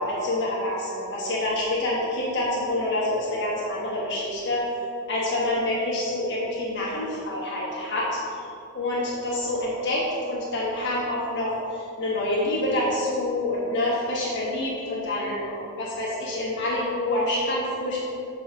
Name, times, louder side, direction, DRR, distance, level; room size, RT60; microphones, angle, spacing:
voice 1, 0.0-4.6 5.1-8.1 8.7-18.0, left 1 dB, 55° left, -5 dB, 1.2 m, -27 dB
7.4 x 4.1 x 5.9 m, 2.5 s
head